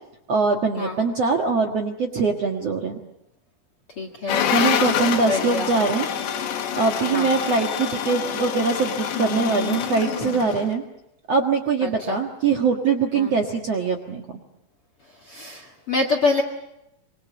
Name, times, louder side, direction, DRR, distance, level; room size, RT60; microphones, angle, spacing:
voice 1, 0.3-3.0 4.5-6.5 6.8-10.8 11.3-14.2, right 4 dB, 55° right, 2 dB, 1.9 m, -23 dB
voice 2, 4.0-4.5 5.3-5.7 7.1-7.3 11.8-12.2 13.1-13.3 15.3-16.4, left 3 dB, 50° left, 6 dB, 1.8 m, -26 dB
sound 1, 4.3-10.7, left 9 dB, 80° left, 3.9 m, -26 dB
25.5 x 24.0 x 7.4 m, 0.86 s
omnidirectional pair, 5.0 m